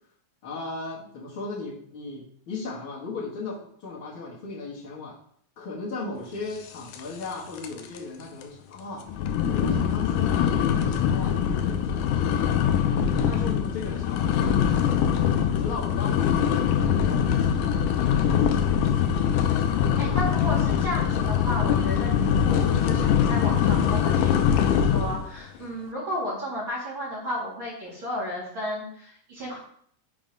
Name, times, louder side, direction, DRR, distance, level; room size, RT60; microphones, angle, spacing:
voice 1, 0.4-5.2 5.6-9.1 9.5-12.3 13.2-16.7 17.0-17.9 18.2-19.3 19.7-20.3, left 3 dB, 50° left, -5 dB, 1.8 m, -37 dB
sound 1, 6.9-7.3 7.6-8.0 8.4-8.5 9.1-25.3, left 8 dB, 80° left, 2.0 m, -23 dB
voice 2, 20.0-29.6, left 1 dB, 40° right, -6 dB, 2.6 m, -33 dB
6.3 x 3.9 x 5.1 m, 0.64 s
omnidirectional pair, 3.9 m